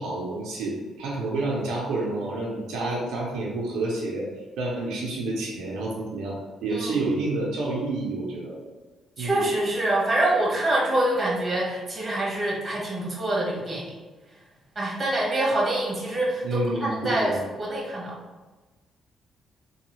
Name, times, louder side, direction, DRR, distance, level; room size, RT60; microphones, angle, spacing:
voice 1, 0.0-4.3 4.6-8.6 9.2-9.4 16.4-17.4, right 2 dB, 85° right, -3 dB, 0.6 m, -29 dB
voice 2, 9.2-14.0 14.7-18.2, right 1 dB, 30° right, -5 dB, 1.1 m, -25 dB
3.0 x 2.2 x 3.1 m, 1.2 s
cardioid pair, 90°, 0 cm